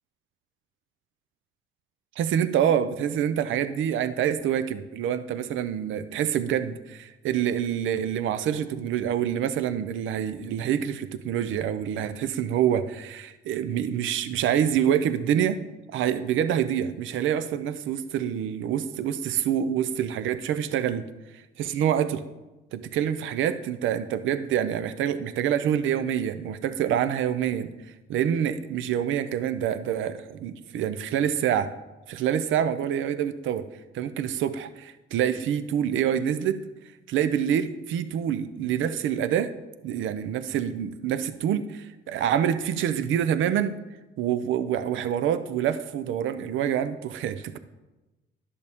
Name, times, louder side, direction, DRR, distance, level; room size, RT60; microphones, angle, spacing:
voice 1, 2.2-15.6 15.9-21.1 21.6-22.2 22.7-27.7 28.1-31.7 32.1-33.7 33.9-36.6 37.1-39.5 39.8-43.8 44.2-47.6, right 9 dB, 80° right, 13 dB, 0.5 m, -26 dB
10.5 x 6.8 x 3.5 m, 1.1 s
cardioid pair, 90°, 20 cm